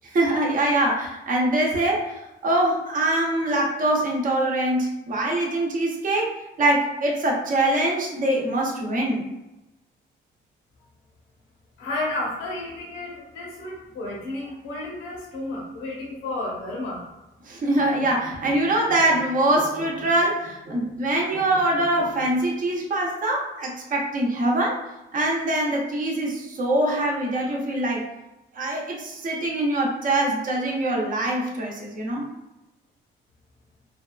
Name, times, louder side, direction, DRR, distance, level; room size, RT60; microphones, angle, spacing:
voice 1, 0.1-9.3 17.4-24.8 25.1-28.1 28.5-32.3, right 1 dB, 40° right, -2 dB, 0.8 m, -23 dB
voice 2, 11.8-17.0, left 2 dB, 90° left, -4 dB, 0.8 m, -32 dB
3.3 x 2.3 x 2.3 m, 0.98 s
cardioid pair, 90°, 20 cm